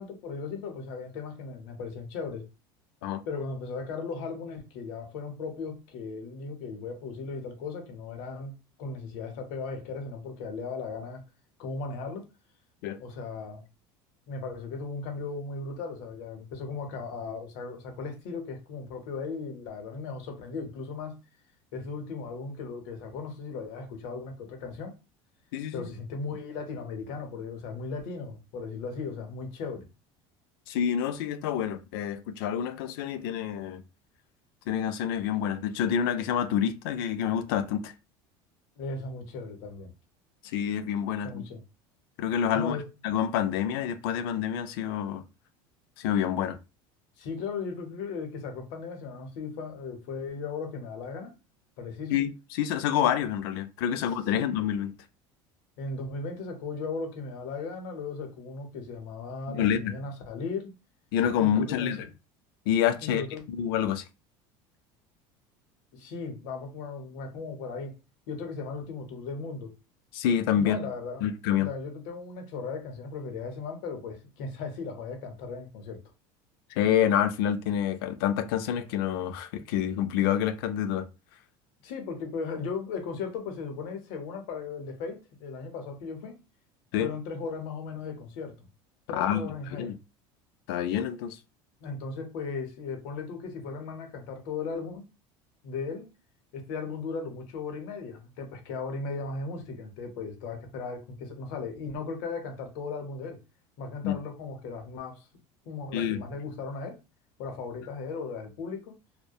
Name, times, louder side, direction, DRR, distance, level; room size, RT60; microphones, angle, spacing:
voice 1, 0.0-2.5 3.2-8.5 8.8-11.2 11.6-12.3 13.0-13.6 14.3-21.2 21.7-25.0 25.7-29.9 38.8-39.9 41.2-41.6 42.5-42.9 47.2-51.3 51.8-52.2 54.3-54.5 55.8-60.7 61.4-62.0 63.0-63.4 65.9-68.0 68.3-69.7 70.5-71.3 71.6-76.0 81.8-86.4 87.0-88.7 89.1-89.9 91.8-95.1 95.6-96.1 96.5-103.4 103.8-105.3 105.7-107.0 107.4-109.0, left 4 dB, 75° left, 0.8 m, -37 dB
voice 2, 25.5-25.9 30.7-33.8 34.7-37.9 40.4-41.4 42.2-42.8 43.0-45.2 46.0-46.6 52.1-55.0 59.5-59.9 61.1-62.0 62.7-63.2 63.5-64.0 70.1-70.9 71.2-71.7 76.7-81.1 86.9-87.1 89.1-89.9 90.7-91.4 104.0-104.2 105.9-106.2, left 9 dB, 90° left, 0.4 m, -27 dB
2.8 x 2.1 x 2.2 m
cardioid pair, 145°, 12 cm